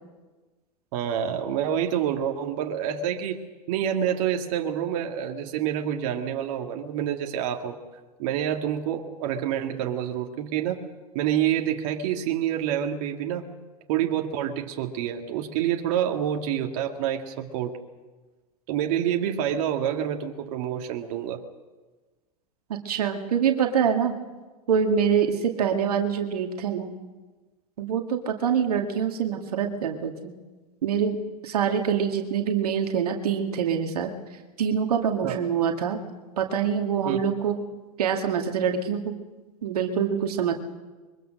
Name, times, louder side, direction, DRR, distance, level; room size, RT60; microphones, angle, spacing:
voice 1, 0.9-3.4 3.7-7.8 8.2-10.8 11.1-13.5 13.9-17.7 18.7-21.4 35.2-35.4 37.1-37.2, right 10 dB, 55° right, 3 dB, 2.0 m, -27 dB
voice 2, 22.8-24.1 24.7-26.9 27.8-30.3 30.8-31.2 31.4-34.1 34.6-36.0 36.4-37.6 38.0-39.0 39.6-40.5, right 7 dB, 75° right, 4 dB, 2.1 m, -25 dB
23.0 x 23.0 x 6.4 m, 1.3 s
hypercardioid pair, 95°, 20 cm